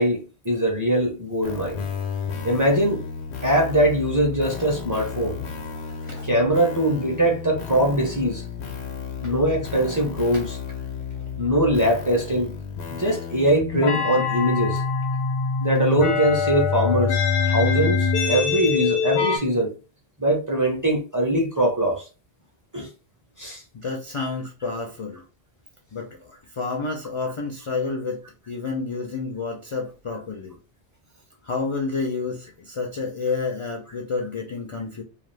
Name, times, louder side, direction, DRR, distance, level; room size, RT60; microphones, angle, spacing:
voice 1, 0.0-1.8 2.4-3.0 3.4-5.4 6.2-8.5 9.2-10.6 11.4-12.6 12.9-14.8 15.6-19.7 20.2-22.1 22.7-22.9 23.4-23.6, right 1 dB, 20° right, 0.6 m, -22 dB
sound 1, 1.4-19.4, left 5 dB, 85° left, 0.9 m, -27 dB
voice 2, 23.7-25.2 25.9-30.6 31.4-35.0, left 4 dB, 50° left, 0.4 m, -30 dB
2.4 x 2.3 x 3.2 m
omnidirectional pair, 1.1 m